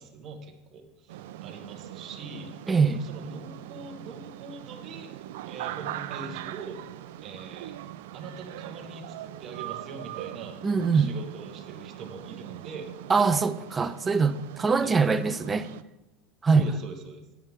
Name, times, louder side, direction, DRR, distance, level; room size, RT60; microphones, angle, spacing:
voice 1, 0.0-2.5 2.9-5.1 5.5-6.8 7.2-7.8 8.1-10.6 10.9-12.9 14.7-14.9 16.5-17.2, right 4 dB, 30° right, 1.4 m, -42 dB
sound 1, 1.1-15.8, right 13 dB, 85° right, 0.5 m, -41 dB
voice 2, 2.7-3.0 10.6-11.1 13.1-15.7 16.4-16.6, right 5 dB, 15° right, 0.5 m, -23 dB
12.0 x 9.7 x 3.6 m
supercardioid pair, 165°, 0 cm